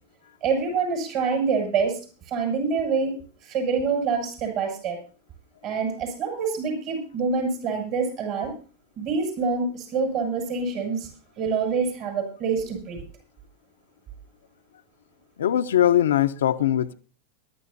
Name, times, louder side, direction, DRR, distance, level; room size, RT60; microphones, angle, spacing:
voice 1, 0.4-2.0 2.3-3.2 3.4-5.0 5.6-8.5 9.0-11.1 11.4-13.0, right 5 dB, 50° right, 6.9 m, -26 dB
voice 2, 15.4-16.9, left 11 dB, 80° left, 0.7 m, -21 dB
22.0 x 12.0 x 2.7 m
hypercardioid pair, 105°, 0 cm